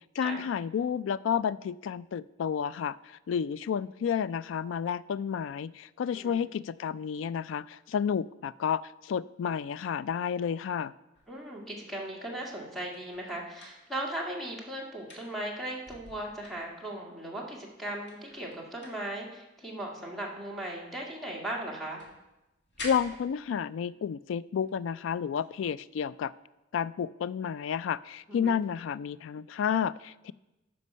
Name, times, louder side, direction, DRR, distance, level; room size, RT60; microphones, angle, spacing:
voice 1, 0.2-10.9 22.8-26.3 26.7-30.3, left 7 dB, 85° left, 19 dB, 0.3 m, -31 dB
sound 1, 11.1-14.5 14.8-17.2 17.7-17.8 18.0-21.4 21.7-23.9 24.6-25.0 25.3-25.5 28.6-28.8, left 2 dB, 65° left, 2.0 m, -49 dB
voice 2, 11.3-22.0 28.3-28.6, right 1 dB, ahead, -2 dB, 1.8 m, -38 dB
13.5 x 5.4 x 5.5 m, 0.99 s
head